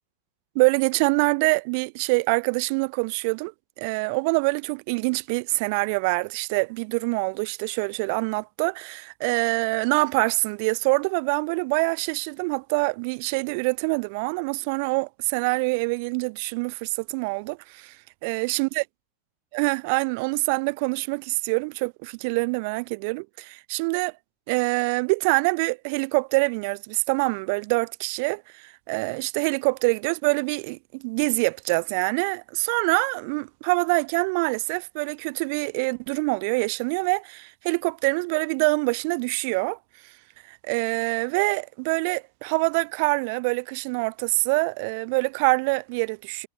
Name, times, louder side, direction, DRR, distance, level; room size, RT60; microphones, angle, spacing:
voice 1, 0.6-18.0 18.2-18.8 19.5-24.1 24.5-39.8 40.0-40.1 40.5-46.5, right 31 dB, 45° right, 0.3 m, -25 dB
figure-of-eight pair, 90°, 0 cm